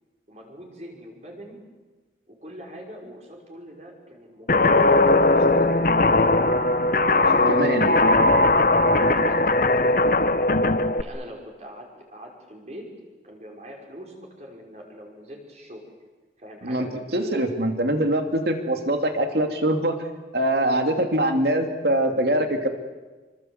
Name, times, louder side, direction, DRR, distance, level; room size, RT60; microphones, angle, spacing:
voice 1, 0.3-1.6 2.3-6.2 7.0-9.5 10.8-12.9 13.2-15.8 16.4-16.9, equal, 40° right, 0 dB, 5.6 m, -43 dB
Guitar, 4.5-11.0, left 2 dB, 50° left, 1.0 m, -19 dB
voice 2, 7.5-7.9 16.6-16.9 17.1-20.0 20.3-22.7, right 1 dB, 70° right, 5 dB, 2.8 m, -23 dB
26.0 x 24.5 x 8.1 m, 1.3 s
head